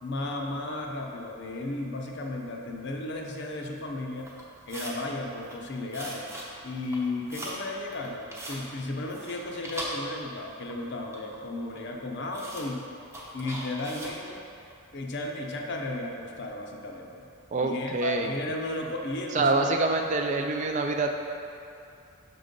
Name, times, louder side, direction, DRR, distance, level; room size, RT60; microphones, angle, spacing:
voice 1, 0.0-4.3 4.7-6.3 6.6-12.8 13.3-14.4 14.9-17.2 17.6-19.7, left 2 dB, 55° left, 1 dB, 0.6 m, -34 dB
sound 1, 4.2-5.0 5.4-5.6 5.9-6.5 6.8-7.6 7.9-8.6 9.1-10.5 10.7-11.4 11.7-11.8 12.3-12.7 13.1-14.2, right 1 dB, 10° right, 0.7 m, -40 dB
voice 2, 17.5-18.3 19.3-21.1, right 3 dB, 35° right, 4 dB, 0.3 m, -26 dB
6.0 x 3.8 x 5.2 m, 2.6 s
head